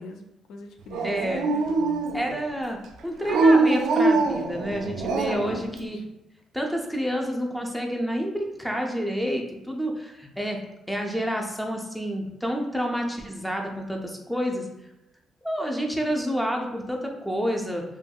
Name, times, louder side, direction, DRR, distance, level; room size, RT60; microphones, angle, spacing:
voice 1, 0.0-1.4 1.8-2.1 5.0-5.9, left 3 dB, 75° left, 4 dB, 0.3 m, -41 dB
Dog, 0.9-2.4 3.2-5.6, right 3 dB, 80° right, 0.3 m, -23 dB
voice 2, 1.0-1.5 2.1-2.8 3.0-6.0 6.5-10.6 10.9-14.7 15.4-17.8, equal, ahead, 1 dB, 0.5 m, -29 dB
2.8 x 2.6 x 2.3 m, 0.91 s
cardioid pair, 90°, 0 cm